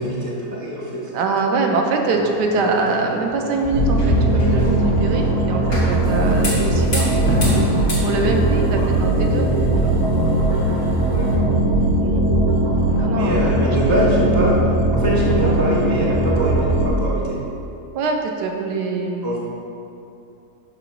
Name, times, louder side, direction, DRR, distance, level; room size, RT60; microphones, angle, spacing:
voice 1, 0.0-1.1 8.7-8.9 11.1-11.3 13.1-17.4 19.2-19.4, equal, 20° left, -6 dB, 0.5 m, -23 dB
voice 2, 1.1-7.4 8.0-9.5 9.8-10.0 12.0-12.2 13.0-13.6 15.5-15.6 17.9-19.4, right 3 dB, 90° right, 2 dB, 1.3 m, -23 dB
sound 1, 2.1-11.3, left 1 dB, 45° left, 2.0 m, -28 dB
sound 2, 3.7-16.9, right 1 dB, 70° right, 1.5 m, -19 dB
7.0 x 3.0 x 5.9 m, 2.7 s
omnidirectional pair, 1.8 m